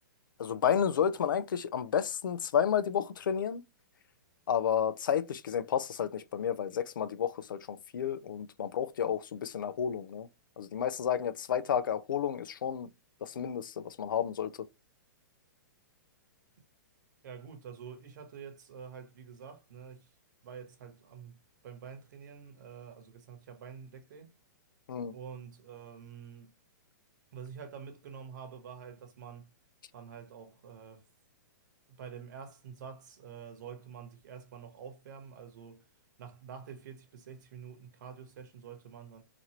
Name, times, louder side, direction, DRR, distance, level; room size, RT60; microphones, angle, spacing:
voice 1, 0.4-3.6 4.5-10.3 10.6-12.9 13.2-14.5 24.9-25.2, left 8 dB, 80° left, 0.4 m, -31 dB
voice 2, 17.2-20.1 20.4-21.4 21.6-24.3 25.1-26.5 27.3-29.5 29.9-31.0 31.9-35.8 36.2-39.2, right 7 dB, 60° right, 1.0 m, -47 dB
2.9 x 2.5 x 2.9 m
hypercardioid pair, 145°, 11 cm